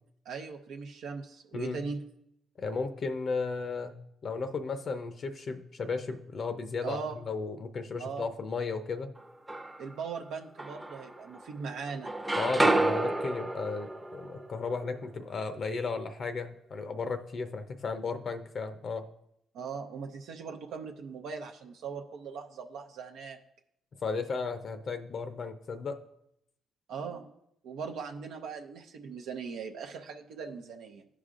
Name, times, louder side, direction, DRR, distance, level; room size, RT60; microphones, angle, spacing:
voice 1, 0.3-2.0 6.8-7.2 8.0-8.3 9.8-12.1 19.5-23.4 26.9-27.3 27.6-31.1, right 5 dB, 85° right, 3 dB, 0.6 m, -39 dB
voice 2, 2.6-4.0 4.2-9.1 12.4-19.0 24.0-26.0, left 4 dB, 50° left, 8 dB, 0.5 m, -34 dB
sound 1, 9.2-10.0 10.6-11.6 11.9-15.8, right 2 dB, 10° right, 0.6 m, -31 dB
13.5 x 5.0 x 2.5 m, 0.77 s
cardioid pair, 90°, 0 cm